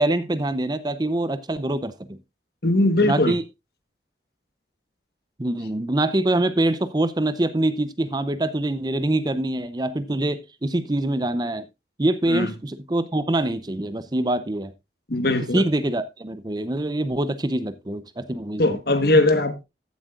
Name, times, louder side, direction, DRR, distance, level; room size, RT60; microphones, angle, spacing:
voice 1, 0.0-1.9 3.0-3.4 5.4-11.6 12.0-14.7 15.5-18.8, right 1 dB, 20° right, 0.6 m, -24 dB
voice 2, 2.6-3.4 12.3-12.5 15.1-15.6 18.6-19.6, left 2 dB, 55° left, 1.3 m, -20 dB
14.5 x 7.4 x 2.4 m
head